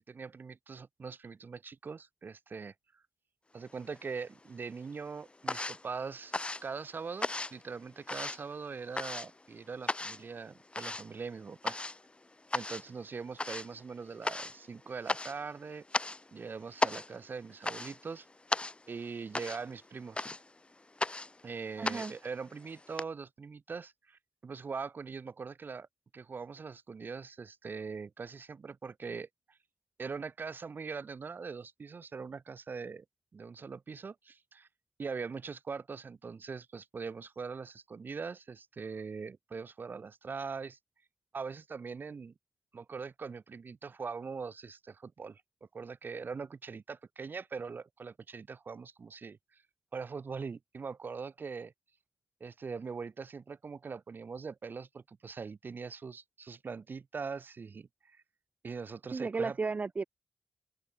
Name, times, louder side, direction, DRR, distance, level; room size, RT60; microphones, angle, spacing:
voice 1, 0.0-2.7 3.5-6.3 6.6-11.8 12.5-15.8 16.3-18.3 18.9-20.2 21.4-25.9 26.1-29.6 30.0-33.0 33.3-34.7 35.0-40.8 41.3-42.3 42.7-45.4 45.7-49.4 49.9-51.7 52.4-58.2 58.6-59.6, right 5 dB, 55° right, 2.1 m, -42 dB
sound 1, 3.7-4.5 4.8-23.0, left 2 dB, 25° left, 2.1 m, -37 dB
voice 2, 21.8-22.1 59.1-60.0, right 4 dB, 40° right, 0.4 m, -33 dB
open air
supercardioid pair, 45°, 4 cm